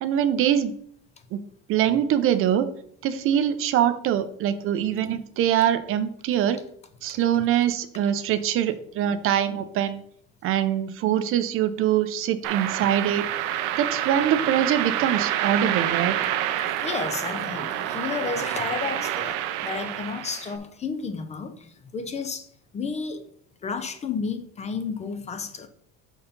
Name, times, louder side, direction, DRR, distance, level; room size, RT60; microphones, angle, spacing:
voice 1, 0.0-0.7 1.3-1.4 1.7-2.7 3.0-6.6 7.0-10.0 10.4-13.3 13.8-16.1, right 10 dB, 45° right, 12 dB, 0.5 m, -23 dB
sound 1, 12.4-20.5, right 12 dB, 85° right, 0.7 m, -28 dB
voice 2, 16.6-23.2 23.6-25.7, left 5 dB, 25° left, 8 dB, 0.5 m, -32 dB
5.6 x 4.5 x 5.2 m, 0.65 s
cardioid pair, 150°, 30 cm